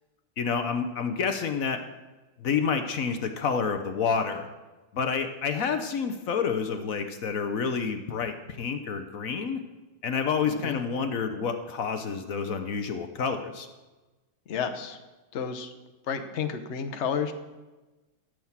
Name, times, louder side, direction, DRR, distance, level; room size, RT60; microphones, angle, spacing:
voice 1, 0.4-1.8 2.4-4.5 4.9-9.6 10.0-13.7, left 6 dB, 65° left, 7 dB, 0.8 m, -29 dB
voice 2, 10.4-10.8 14.5-15.0 15.3-15.7 16.1-17.3, left 7 dB, 90° left, 7 dB, 0.6 m, -31 dB
13.5 x 6.2 x 7.3 m, 1.1 s
omnidirectional pair, 2.4 m